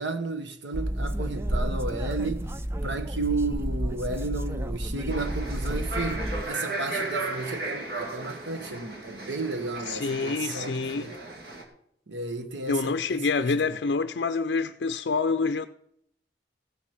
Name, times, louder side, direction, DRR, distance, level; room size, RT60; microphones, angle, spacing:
voice 1, 0.0-2.5 2.8-11.1 12.1-13.7, right 3 dB, 90° right, 1.2 m, -33 dB
sound 1, 0.7-6.4, right 1 dB, 15° right, 0.4 m, -31 dB
sound 2, 5.1-11.6, right 2 dB, 60° right, 2.1 m, -35 dB
voice 2, 9.9-11.1 12.7-15.7, left 4 dB, 65° left, 0.4 m, -27 dB
16.0 x 6.2 x 5.9 m
head